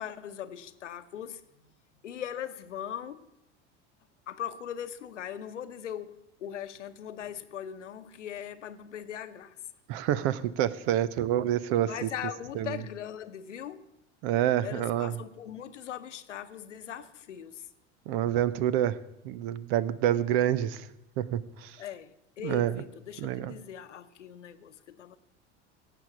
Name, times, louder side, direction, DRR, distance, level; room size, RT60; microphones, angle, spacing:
voice 1, 0.0-1.5 2.0-3.3 4.3-9.6 11.8-13.9 14.6-17.7 21.8-25.2, left 9 dB, 90° left, 0.9 m, -40 dB
voice 2, 9.9-12.1 12.6-12.8 14.2-15.2 18.1-19.0 19.2-20.9 21.2-21.8 22.4-22.8 23.2-23.5, right 11 dB, 60° right, 0.8 m, -27 dB
17.0 x 6.9 x 7.2 m
hypercardioid pair, 75°, 35 cm